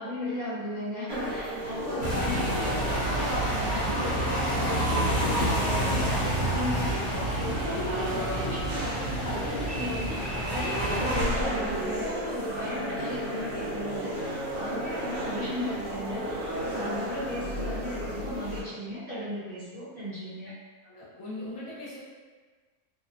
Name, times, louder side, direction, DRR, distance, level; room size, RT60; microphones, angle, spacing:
voice 1, 0.0-20.5, left 1 dB, 40° right, -13 dB, 0.8 m, -35 dB
sound 1, 1.1-18.6, equal, 70° right, 1.0 m, -34 dB
sound 2, 2.0-11.2, right 1 dB, 40° left, 0.7 m, -29 dB
voice 2, 20.8-22.0, left 1 dB, 70° left, -7 dB, 1.1 m, -41 dB
3.0 x 2.1 x 2.4 m, 1.4 s
omnidirectional pair, 1.6 m